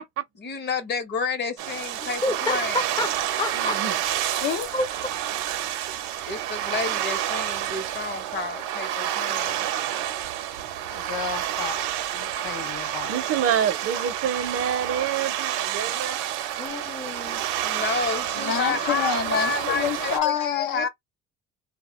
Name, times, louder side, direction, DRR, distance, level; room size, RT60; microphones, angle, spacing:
voice 1, 0.4-2.9 6.2-9.7 17.6-20.9, left 4 dB, 35° left, 0.8 m, -30 dB
sound 1, 1.6-20.2, right 11 dB, 90° right, 0.6 m, -29 dB
voice 2, 2.0-3.8 4.7-4.9 16.6-17.4, left 2 dB, 15° left, 0.5 m, -29 dB
voice 3, 3.5-4.0 13.1-16.2, right 8 dB, 50° right, 0.6 m, -27 dB
voice 4, 4.4-4.7 10.7-11.9 12.1-13.2 18.3-20.9, left 8 dB, 75° left, 0.7 m, -29 dB
2.3 x 2.1 x 2.9 m
cardioid pair, 130°, 30 cm